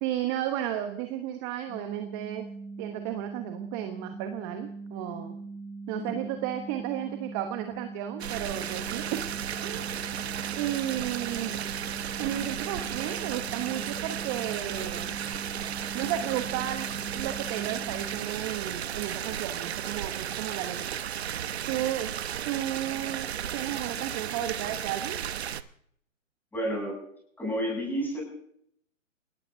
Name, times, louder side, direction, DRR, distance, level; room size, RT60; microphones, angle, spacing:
voice 1, 0.0-2.5 2.8-5.4 5.9-9.3 9.6-9.9 10.6-11.6 12.2-15.1 15.9-21.0 21.7-22.1 22.5-23.3 23.5-25.2, right 12 dB, 20° right, 7 dB, 1.0 m, -33 dB
sound 1, 1.7-18.2, right 3 dB, 55° left, 7.6 m, -41 dB
sound 2, 8.2-25.6, right 9 dB, 50° right, 1.0 m, -34 dB
voice 2, 26.5-27.0 27.4-28.2, equal, 5° left, -2 dB, 7.9 m, -30 dB
29.5 x 18.0 x 2.7 m, 0.67 s
hypercardioid pair, 140°, 40 cm